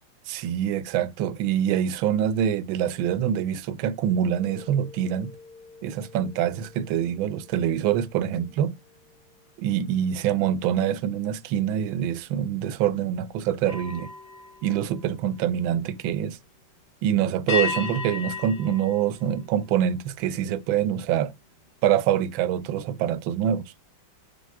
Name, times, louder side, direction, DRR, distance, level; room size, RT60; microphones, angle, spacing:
voice 1, 0.3-5.3 5.8-8.7 9.6-14.1 14.6-16.4 17.0-21.3 21.8-23.6, right 10 dB, 75° right, 1.4 m, -25 dB
sound 1, 4.3-9.9 10.3-10.6 13.6-15.8 17.5-20.1, left 5 dB, 35° left, 1.2 m, -37 dB
6.9 x 3.8 x 4.6 m
omnidirectional pair, 2.4 m